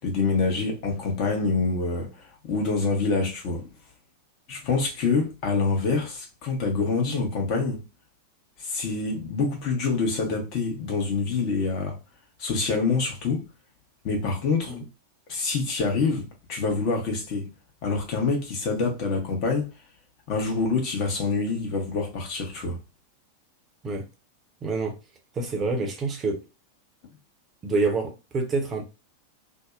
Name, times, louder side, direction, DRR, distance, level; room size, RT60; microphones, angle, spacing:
voice 1, 0.0-3.7 4.5-7.8 8.6-12.0 12.4-13.5 14.0-14.7 15.3-17.5 17.8-19.7 20.3-22.8, left 4 dB, 40° left, 0.8 m, -26 dB
voice 2, 24.6-25.0 25.3-26.4 27.6-28.9, right 3 dB, 25° right, 0.7 m, -27 dB
2.6 x 2.0 x 2.4 m
figure-of-eight pair, 90°, 0 cm